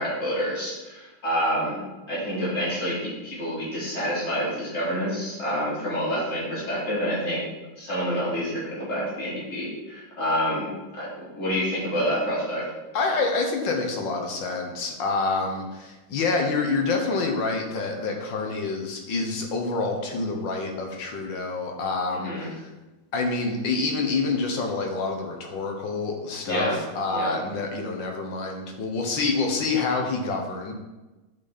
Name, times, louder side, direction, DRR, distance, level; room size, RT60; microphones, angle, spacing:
voice 1, 0.0-1.8 2.1-7.4 7.8-12.7 22.1-22.5 26.5-26.8 27.1-27.4, equal, 40° left, -8 dB, 3.9 m, -28 dB
voice 2, 12.9-22.6 23.1-30.7, left 3 dB, 80° left, 2 dB, 2.0 m, -27 dB
11.5 x 5.5 x 4.2 m, 1.1 s
omnidirectional pair, 2.0 m